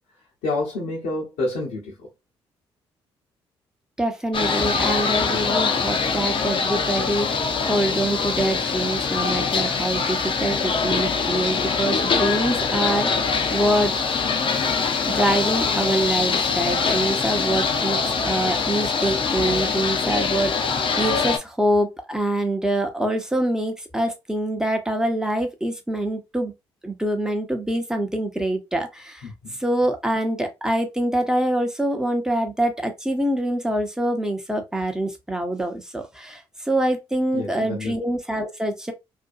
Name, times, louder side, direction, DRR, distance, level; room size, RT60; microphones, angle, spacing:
voice 1, 0.4-2.1 29.2-29.6 37.3-37.9, left 2 dB, 75° left, 0.8 m, -28 dB
voice 2, 4.0-13.9 15.1-26.5 26.8-29.3 29.6-38.9, right 1 dB, 5° right, 0.9 m, -25 dB
sound 1, 4.3-21.4, left 5 dB, 45° left, 0.6 m, -23 dB
2.6 x 2.2 x 2.5 m
hypercardioid pair, 45°, 12 cm